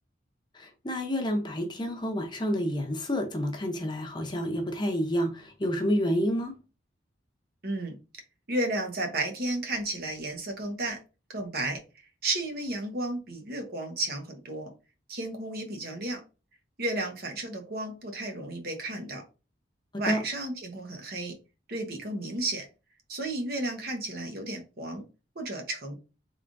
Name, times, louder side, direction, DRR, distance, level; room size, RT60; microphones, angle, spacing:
voice 1, 0.5-6.5 20.1-20.2, equal, 25° left, 0.7 m, -29 dB
voice 2, 7.6-8.0 8.5-11.0 11.3-11.8 12.2-14.7 15.1-16.2 16.8-19.2 20.0-21.3 21.7-22.7 23.1-25.0 25.3-26.0, right 2 dB, 55° right, 1.0 m, -33 dB
3.6 x 3.4 x 2.5 m
head